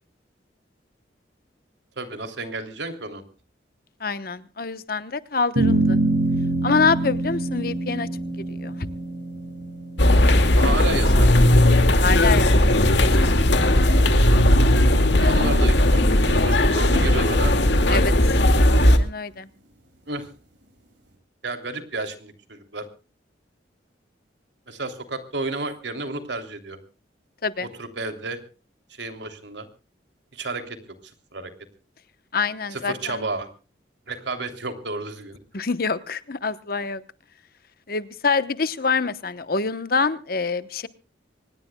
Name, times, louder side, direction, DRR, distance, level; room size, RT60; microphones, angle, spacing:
voice 1, 2.0-3.2 10.6-11.3 14.1-14.8 15.2-17.5 17.9-18.2 20.1-20.3 21.4-22.9 24.7-26.8 27.6-28.4 28.9-29.7 30.3-30.8 31.3-31.5 32.7-33.5 34.1-35.4, right 2 dB, 75° right, 7 dB, 3.1 m, -31 dB
voice 2, 4.0-6.0 6.6-8.1 8.5-8.9 12.0-12.7 13.0-13.5 17.9-18.1 18.8-19.5 27.4-27.7 32.3-33.2 35.5-37.0 37.9-40.9, left 4 dB, 55° left, 13 dB, 1.0 m, -26 dB
sound 1, 5.6-12.1, right 2 dB, 90° right, 6.4 m, -25 dB
sound 2, 10.0-19.0, left 1 dB, 75° left, 2.2 m, -17 dB
25.0 x 20.0 x 2.3 m, 0.36 s
head